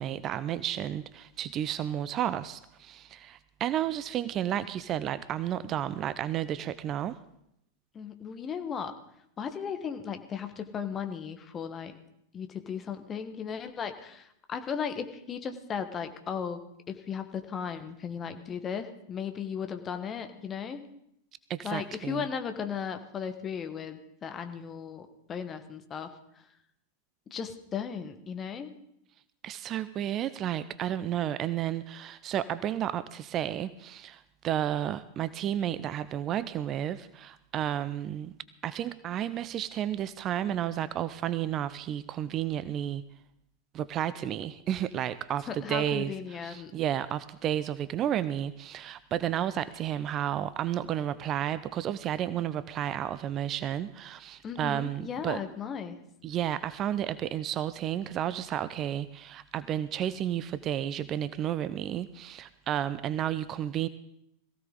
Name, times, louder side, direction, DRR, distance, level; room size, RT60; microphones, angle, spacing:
voice 1, 0.0-7.2 21.5-22.2 29.4-38.3 38.6-43.0 43.7-55.4 56.2-63.9, right 11 dB, 30° right, 15 dB, 0.6 m, -32 dB
voice 2, 7.9-8.9 9.4-12.0 12.3-16.6 16.9-20.8 21.6-26.4 27.3-28.7 45.5-46.7 54.4-56.0, left 7 dB, 25° left, 7 dB, 1.4 m, -36 dB
21.5 x 15.5 x 3.9 m, 0.76 s
figure-of-eight pair, 90°, 0 cm